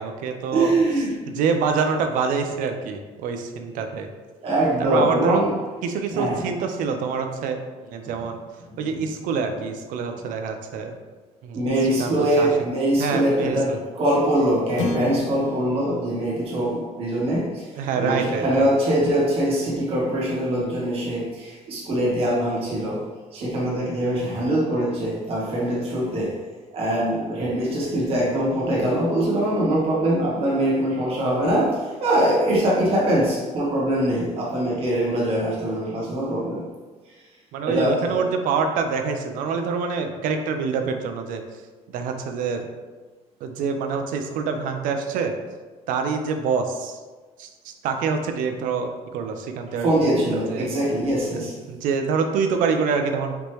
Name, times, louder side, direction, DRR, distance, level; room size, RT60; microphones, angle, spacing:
voice 1, 0.0-0.7 1.4-4.1 4.8-5.4 5.8-7.6 7.9-8.4 8.8-10.9 11.4-11.6 12.0-12.5 13.0-13.8 17.8-18.7 37.5-41.4 41.9-42.6 43.4-45.3 45.9-47.0 47.4-49.9 50.3-50.7 51.7-53.4, right 5 dB, 85° right, 5 dB, 0.5 m, -26 dB
voice 2, 0.5-1.4 4.4-5.5 6.1-6.5 8.0-8.1 8.7-8.8 11.5-26.4 26.7-36.7 37.1-37.2 37.6-38.2 49.8-51.6, right 1 dB, 45° right, -5 dB, 1.3 m, -23 dB
sound 1, 14.8-19.2, left 2 dB, 65° left, 0.5 m, -34 dB
5.1 x 3.0 x 3.0 m, 1.3 s
cardioid pair, 170°, 13 cm